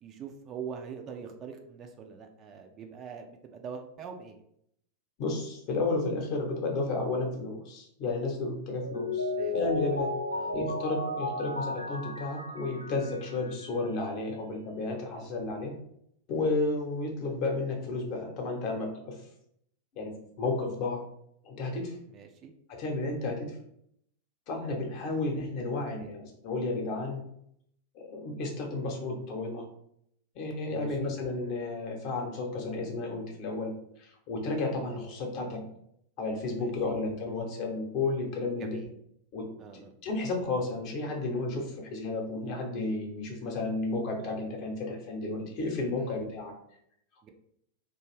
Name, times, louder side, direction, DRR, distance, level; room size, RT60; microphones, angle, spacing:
voice 1, 0.0-4.4 9.3-9.6 10.3-10.5 15.2-15.4 22.1-22.5 26.0-26.1 30.7-31.1 36.6-37.0 38.6-38.9 39.6-39.9 46.0-46.2 47.2-47.3, right 6 dB, 30° right, 4 dB, 0.3 m, -43 dB
voice 2, 5.2-10.1 10.5-15.8 16.3-19.2 19.9-21.0 21.4-22.0 22.7-23.6 24.5-27.2 27.9-29.7 30.3-35.7 36.2-38.8 39.3-46.5, left 3 dB, 40° left, 1 dB, 0.7 m, -32 dB
Mallet percussion, 8.7-13.6, left 2 dB, 85° left, 0.3 m, -34 dB
2.5 x 2.2 x 3.1 m, 0.72 s
figure-of-eight pair, 90°, 0 cm